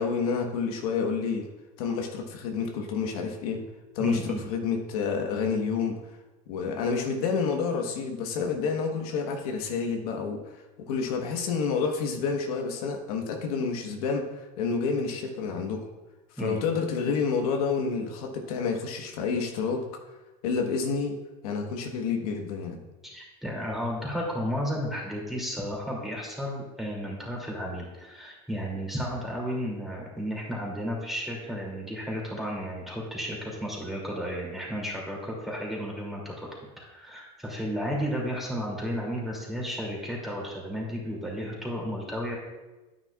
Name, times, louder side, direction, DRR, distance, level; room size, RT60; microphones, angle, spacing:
voice 1, 0.0-1.5 1.8-3.6 3.9-5.9 6.5-10.6 10.9-15.9 16.3-19.8 20.4-21.2 21.4-22.8, left 5 dB, 90° left, 2 dB, 1.3 m, -29 dB
voice 2, 4.0-4.4 16.4-16.6 23.0-36.5 36.8-42.3, equal, ahead, -4 dB, 2.6 m, -33 dB
9.6 x 9.0 x 2.4 m, 1.1 s
supercardioid pair, 130°, 19 cm